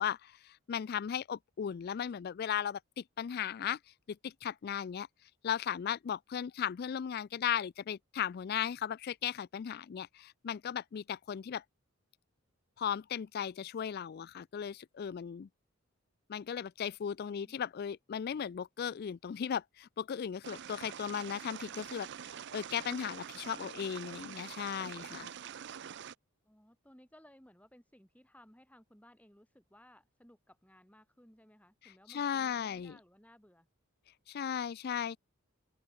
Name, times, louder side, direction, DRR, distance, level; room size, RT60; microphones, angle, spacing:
voice 1, 0.0-3.8 4.1-5.1 5.4-11.6 12.8-15.5 16.3-22.1 22.5-25.3 32.1-33.0 34.3-35.2, left 8 dB, 50° left, 0.3 m, -36 dB
sound 1, 20.4-26.1, right 8 dB, 55° right, 0.5 m, -46 dB
voice 2, 26.4-33.7, equal, 5° left, 7.6 m, -61 dB
open air
head